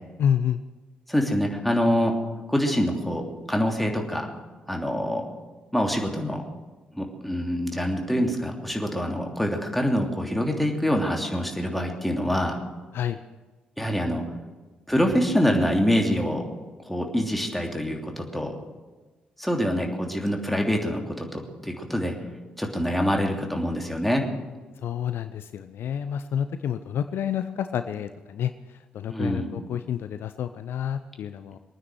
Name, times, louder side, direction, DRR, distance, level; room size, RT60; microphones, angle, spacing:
voice 1, 0.2-0.6 12.9-13.2 24.8-28.5 28.9-31.6, left 9 dB, 60° left, 11 dB, 0.6 m, -29 dB
voice 2, 1.1-2.1 2.5-3.2 3.5-4.3 4.7-5.3 5.7-6.4 7.0-12.6 13.8-14.2 14.9-16.4 16.9-18.5 19.4-22.1 22.6-24.3 29.1-29.5, equal, 5° left, 1 dB, 3.1 m, -25 dB
23.0 x 9.6 x 6.3 m, 1.3 s
figure-of-eight pair, 40°, 4 cm